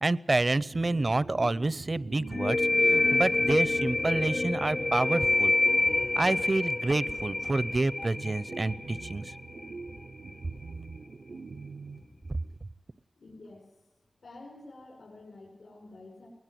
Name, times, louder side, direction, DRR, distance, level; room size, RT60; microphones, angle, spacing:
voice 1, 0.0-2.6 2.8-5.5 6.2-9.3, right 2 dB, 45° right, 19 dB, 0.6 m, -28 dB
sound 1, 0.7-12.6, right 4 dB, 85° right, 0.7 m, -44 dB
sound 2, 2.3-9.7, left 2 dB, 45° left, 0.7 m, -27 dB
voice 2, 13.2-13.7 14.2-16.3, left 2 dB, 85° left, -1 dB, 5.4 m, -49 dB
20.5 x 20.0 x 7.7 m, 1.0 s
wide cardioid pair, 70°, 0 cm